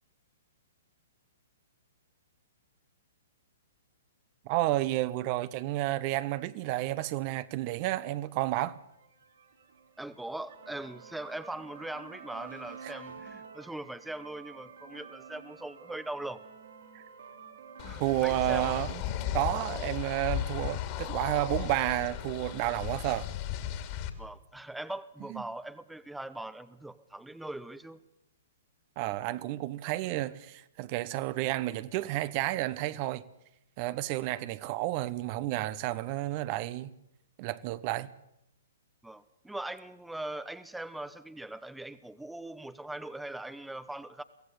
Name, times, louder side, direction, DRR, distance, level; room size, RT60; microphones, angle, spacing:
voice 1, 4.4-8.8 16.9-17.0 18.0-19.0 19.3-23.3 25.3-25.4 29.0-33.2 33.8-36.9 37.4-38.1, right 16 dB, 40° right, 0.9 m, -31 dB
sound 1, 8.9-20.7, right 6 dB, 65° right, 3.7 m, -50 dB
voice 2, 10.0-16.4 17.8-18.7 24.2-28.0 39.0-44.2, right 1 dB, 5° right, 0.8 m, -41 dB
sound 2, 17.8-24.1, left 11 dB, 40° left, 2.6 m, -35 dB
23.5 x 16.5 x 8.3 m
figure-of-eight pair, 120°, 0 cm